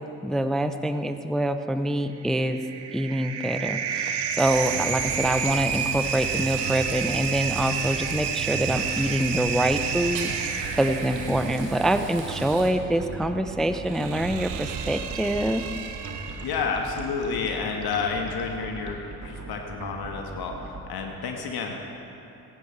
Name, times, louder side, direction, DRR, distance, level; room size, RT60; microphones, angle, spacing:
voice 1, 0.0-2.6 2.9-15.6, right 1 dB, ahead, 9 dB, 0.5 m, -25 dB
sound 1, 2.2-16.8, right 7 dB, 55° right, 1.1 m, -31 dB
Frying (food), 4.4-12.7, right 5 dB, 85° right, 1.3 m, -41 dB
sound 2, 4.6-20.8, right 3 dB, 35° right, 2.2 m, -39 dB
voice 2, 16.4-21.7, left 5 dB, 50° left, 2 dB, 1.5 m, -30 dB
17.0 x 15.5 x 3.3 m, 2.9 s
figure-of-eight pair, 40°, 48 cm